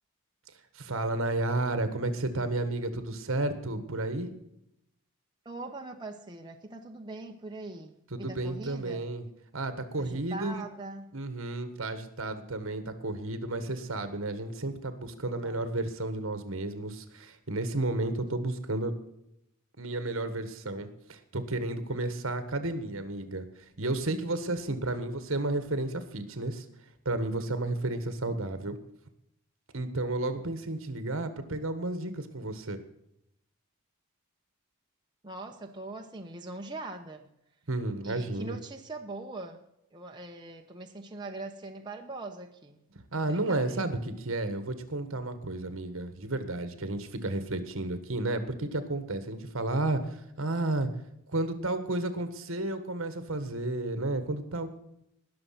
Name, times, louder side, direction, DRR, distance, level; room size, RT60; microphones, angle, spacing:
voice 1, 0.7-4.3 8.1-9.2 9.5-10.6 11.1-18.9 19.8-23.5 23.8-26.6 27.0-28.8 29.7-32.8 37.7-38.6 43.1-50.9 51.3-54.8, right 2 dB, 65° right, 10 dB, 1.5 m, -32 dB
voice 2, 5.4-9.1 10.0-11.1 15.4-15.6 35.2-37.3 38.0-39.6 39.9-42.8 43.2-43.9, right 2 dB, 20° right, 2 dB, 0.9 m, -42 dB
20.0 x 6.7 x 5.9 m, 0.79 s
head